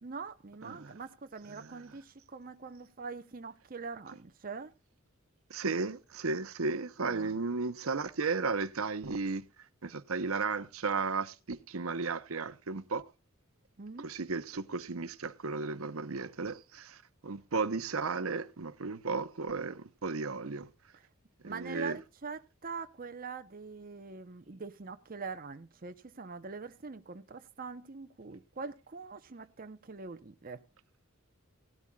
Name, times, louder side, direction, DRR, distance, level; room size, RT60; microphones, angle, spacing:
voice 1, 0.0-4.7 7.0-7.3 13.8-14.1 21.4-30.6, right 4 dB, 40° right, 0.8 m, -43 dB
voice 2, 0.6-0.9 1.5-1.8 5.5-9.5 9.8-13.0 14.0-20.7 21.4-22.0, right 4 dB, 85° right, 0.8 m, -34 dB
17.5 x 12.5 x 2.3 m
head